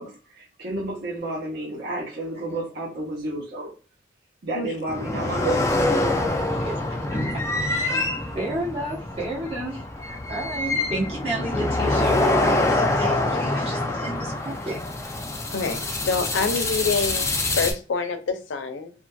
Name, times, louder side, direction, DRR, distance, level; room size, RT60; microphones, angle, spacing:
voice 1, 0.0-3.7 4.4-6.0, right 2 dB, 60° right, 0.9 m, -31 dB
sound 1, 4.9-17.7, left 2 dB, 15° left, 0.4 m, -25 dB
voice 2, 7.3-8.0 8.3-14.8 15.8-16.0, right 1 dB, 30° right, 0.9 m, -32 dB
voice 3, 15.5-18.9, left 4 dB, 80° left, 0.4 m, -27 dB
2.6 x 2.5 x 2.2 m
head